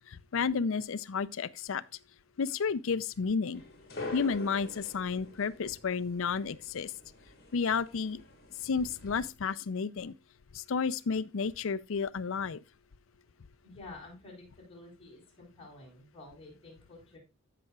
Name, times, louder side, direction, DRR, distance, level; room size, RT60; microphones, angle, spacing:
voice 1, 0.1-1.8 2.4-3.6 4.1-6.9 7.5-8.2 8.6-10.1 10.5-12.6, left 5 dB, 65° left, 0.5 m, -31 dB
sound 1, 3.5-9.3, left 2 dB, 45° left, 2.4 m, -46 dB
voice 2, 13.6-17.2, left 2 dB, 25° left, 4.2 m, -50 dB
14.5 x 5.8 x 2.3 m
head